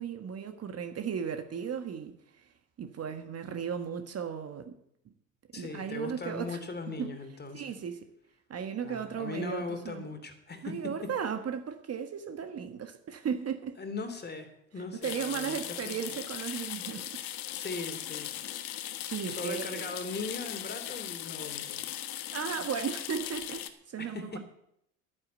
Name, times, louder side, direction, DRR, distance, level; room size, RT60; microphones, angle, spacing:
voice 1, 0.0-2.5 2.8-4.8 5.5-6.6 7.0-7.2 7.5-8.0 8.5-10.0 10.6-13.8 15.0-17.2 18.7-19.8 22.3-24.4, right 7 dB, 35° right, 1.5 m, -36 dB
voice 2, 5.5-7.7 8.8-10.8 13.8-15.6 15.8-16.2 17.5-18.4 19.3-21.8 24.0-24.4, left 3 dB, 25° left, 2.9 m, -39 dB
sound 1, 15.0-23.7, left 12 dB, 80° left, 1.4 m, -38 dB
11.0 x 9.6 x 8.1 m
hypercardioid pair, 80°, 42 cm